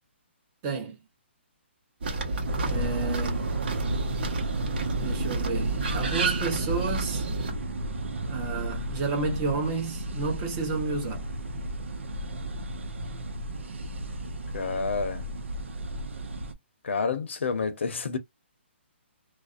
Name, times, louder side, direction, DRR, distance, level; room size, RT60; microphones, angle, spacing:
voice 1, 0.6-1.0 2.6-3.4 5.0-7.3 8.3-11.2, right 4 dB, 20° right, 0.8 m, -31 dB
sound 1, 2.0-7.5, right 3 dB, 50° right, 0.9 m, -30 dB
sound 2, 2.5-16.5, right 1 dB, 80° right, 0.6 m, -34 dB
voice 2, 14.5-15.3 16.8-18.2, left 5 dB, 75° left, 0.7 m, -29 dB
2.5 x 2.0 x 2.4 m
hypercardioid pair, 165°, 7 cm